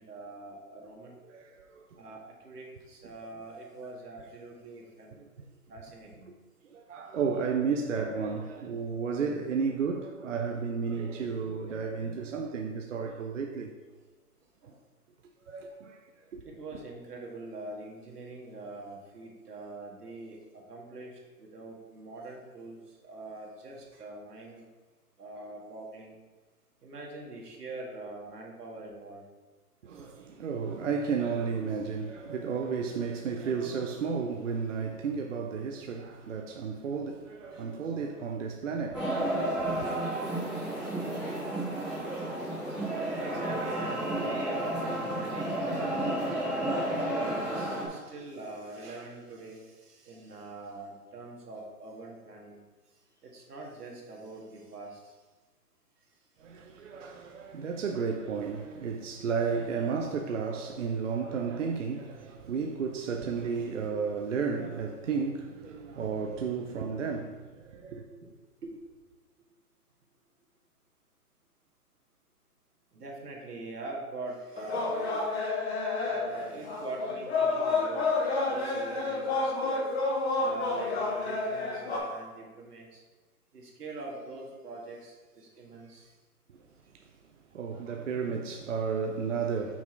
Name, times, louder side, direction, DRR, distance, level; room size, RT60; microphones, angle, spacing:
voice 1, 0.0-1.2 2.0-5.2 5.7-6.3 14.6-14.8 16.4-24.7 25.2-26.2 26.8-29.2 29.9-30.1 37.5-37.7 43.2-46.0 46.6-52.6 53.2-55.1 57.4-57.5 67.9-68.2 68.6-68.7 72.9-75.4 75.8-79.9 80.4-83.0 83.5-86.1, right 2 dB, 80° right, 1.9 m, -43 dB
voice 2, 1.2-1.9 5.2-5.5 6.7-13.7 15.5-16.0 16.3-16.4 29.8-39.3 39.6-39.9 56.4-68.0 86.5-86.6 87.5-89.8, right 5 dB, 55° right, 0.6 m, -33 dB
sound 1, 38.9-47.9, right 1 dB, ahead, 1.0 m, -31 dB
sound 2, 74.6-82.0, left 3 dB, 45° left, 1.5 m, -30 dB
5.9 x 4.2 x 4.5 m
hypercardioid pair, 165°, 46 cm